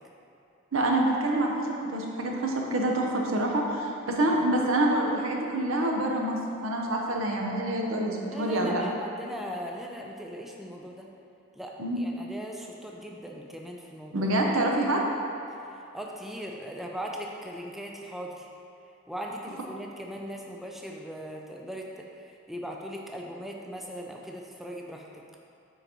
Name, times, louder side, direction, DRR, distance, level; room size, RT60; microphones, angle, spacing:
voice 1, 0.7-1.7 1.9-8.8 11.8-12.0 14.1-15.0, right 1 dB, 85° right, 0 dB, 0.8 m, -26 dB
voice 2, 8.3-11.1 11.5-14.3 14.9-15.1 15.5-18.5 19.1-25.2, equal, ahead, -1 dB, 0.3 m, -39 dB
9.0 x 3.9 x 3.0 m, 2.7 s
head